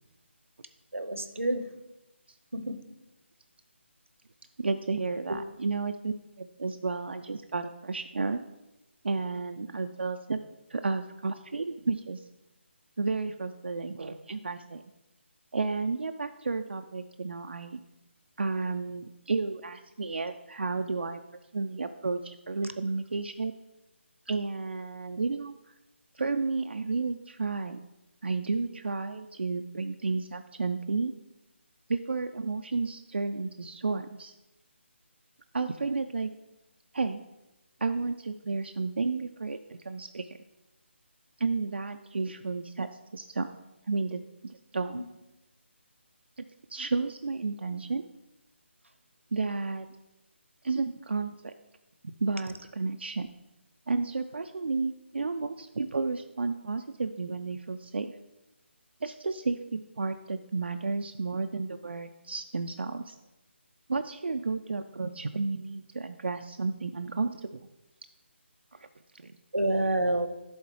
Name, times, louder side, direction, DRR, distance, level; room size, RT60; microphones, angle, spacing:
voice 1, 0.9-1.7 2.5-2.8 44.9-45.0 69.5-70.3, right 1 dB, 85° right, 8 dB, 0.8 m, -28 dB
voice 2, 4.6-8.4 9.0-10.4 10.7-12.2 13.0-14.8 15.5-17.8 18.4-21.2 21.5-23.5 24.3-25.5 26.1-27.8 28.2-31.1 31.9-34.3 35.5-36.3 36.9-37.2 37.8-40.4 41.4-43.5 43.9-45.0 46.4-46.5 46.7-48.1 49.3-49.9 50.6-51.5 52.0-53.3 53.9-58.1 59.0-63.2 63.9-67.5 68.7-68.8 69.1-69.3, right 4 dB, 60° right, 6 dB, 0.4 m, -32 dB
11.0 x 3.9 x 3.2 m, 0.97 s
figure-of-eight pair, 150°, 7 cm